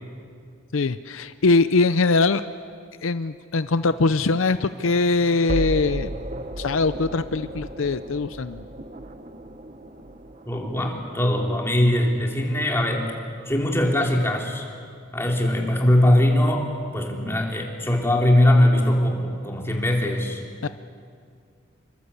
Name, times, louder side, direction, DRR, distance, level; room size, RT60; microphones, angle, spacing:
voice 1, 0.7-2.4 3.0-6.1 6.6-8.6 20.6-20.7, left 3 dB, 80° left, 12 dB, 0.6 m, -22 dB
sound 1, 3.7-14.7, right 1 dB, 35° right, 1.0 m, -36 dB
voice 2, 10.5-13.1 13.4-14.6 15.1-16.7 16.9-20.4, left 1 dB, 10° left, 0 dB, 3.2 m, -21 dB
27.5 x 24.0 x 8.3 m, 2.2 s
head